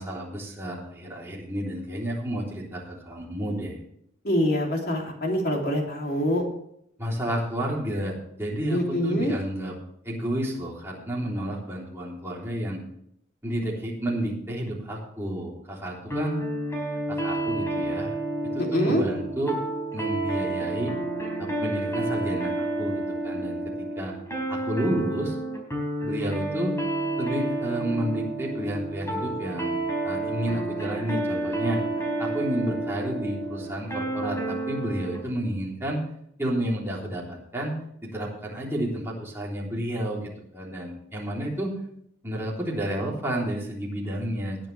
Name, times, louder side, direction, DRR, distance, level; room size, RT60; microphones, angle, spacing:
voice 1, 0.0-3.8 7.0-9.7 10.0-12.8 13.4-16.4 17.1-18.1 18.5-19.6 19.9-20.9 21.4-24.1 24.5-25.4 26.0-26.8 27.2-31.8 32.2-36.0 36.4-41.8 42.2-44.7, right 1 dB, 10° right, -4 dB, 3.4 m, -31 dB
voice 2, 4.2-6.4 8.7-9.3 18.7-19.0, equal, 45° left, 0 dB, 3.1 m, -25 dB
sound 1, 16.1-35.2, right 2 dB, 15° left, 4.0 m, -30 dB
19.5 x 9.1 x 3.4 m, 0.72 s
head